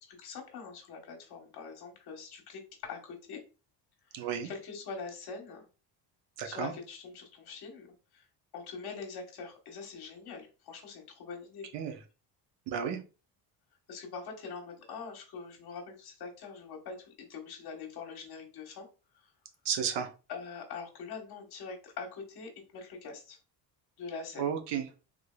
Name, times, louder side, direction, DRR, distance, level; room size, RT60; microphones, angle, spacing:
voice 1, 0.1-3.4 4.1-5.7 6.4-7.9 8.1-8.3 8.5-11.7 13.9-18.9 19.1-19.3 20.3-23.4 24.0-24.5, left 5 dB, 55° left, 2 dB, 1.3 m, -43 dB
voice 2, 4.1-4.5 6.4-6.7 11.7-12.0 12.7-13.0 19.6-20.1 24.4-24.8, right 8 dB, 65° right, 5 dB, 0.9 m, -32 dB
3.6 x 3.3 x 2.3 m, 0.32 s
cardioid pair, 120°, 46 cm